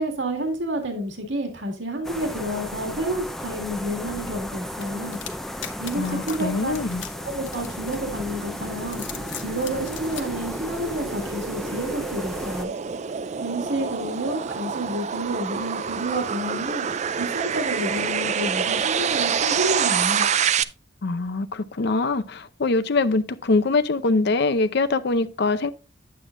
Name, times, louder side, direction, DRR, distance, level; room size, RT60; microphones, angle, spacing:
voice 1, 0.0-5.2 5.8-6.8 7.2-9.0 9.4-12.7 13.4-16.8 17.2-20.3, right 1 dB, 70° right, 2.1 m, -29 dB
sound 1, 2.0-12.6, left 1 dB, ahead, 0.6 m, -35 dB
sound 2, 4.8-8.3 8.8-10.2, left 10 dB, 80° left, 1.1 m, -39 dB
voice 2, 6.0-7.0 21.0-25.7, left 3 dB, 60° left, 0.6 m, -23 dB
sound 3, 7.4-20.6, right 7 dB, 35° right, 0.4 m, -27 dB
9.9 x 7.7 x 2.5 m
head